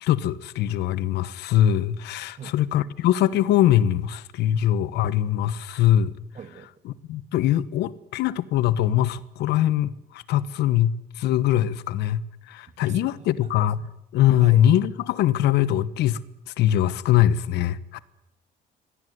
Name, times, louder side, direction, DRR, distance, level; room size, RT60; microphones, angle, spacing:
voice 1, 0.0-6.1 6.8-13.8 14.1-16.2 16.6-18.0, left 12 dB, 80° left, 1.3 m, -22 dB
voice 2, 6.3-6.7 12.8-13.5 14.4-14.6, right 7 dB, 40° right, 2.4 m, -42 dB
24.5 x 18.0 x 9.6 m
cardioid pair, 110°, 17 cm